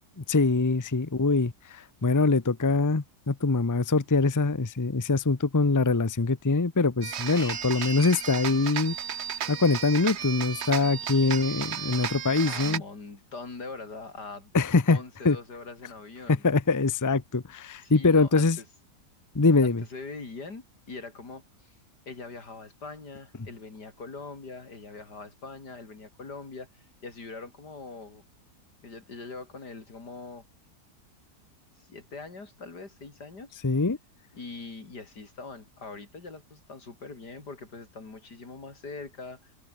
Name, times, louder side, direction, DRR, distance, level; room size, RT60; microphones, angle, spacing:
voice 1, 0.2-8.9 9.5-12.8 14.5-15.0 15.2-15.4 16.3-18.6 19.3-19.8 33.6-34.0, left 3 dB, 15° left, 0.7 m, -23 dB
sound 1, 7.0-12.8, right 8 dB, 50° right, 1.0 m, -34 dB
Vehicle horn car horn honking, 7.3-8.2, left 3 dB, 35° left, 2.5 m, -43 dB
voice 2, 12.5-14.5 14.9-16.4 17.8-18.6 19.6-21.8 22.1-28.2 28.8-30.4 31.8-33.6 34.3-39.6, left 3 dB, 90° left, 4.6 m, -42 dB
omnidirectional pair, 1.7 m